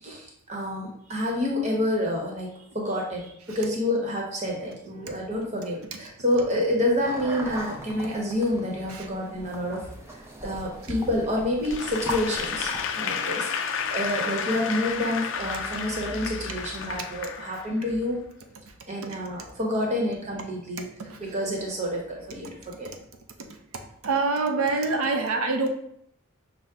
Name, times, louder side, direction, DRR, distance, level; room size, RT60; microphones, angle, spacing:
voice 1, 0.0-18.2 18.9-20.9 21.2-22.9, left 1 dB, 30° right, -1 dB, 1.0 m, -28 dB
sound 1, 7.0-12.8, equal, 10° right, 0.5 m, -39 dB
Applause / Crowd, 11.6-18.0, left 6 dB, 60° left, 0.4 m, -31 dB
voice 2, 21.0-21.4 23.4-25.7, right 3 dB, 80° right, 5 dB, 0.6 m, -28 dB
5.7 x 2.1 x 3.6 m, 0.71 s
head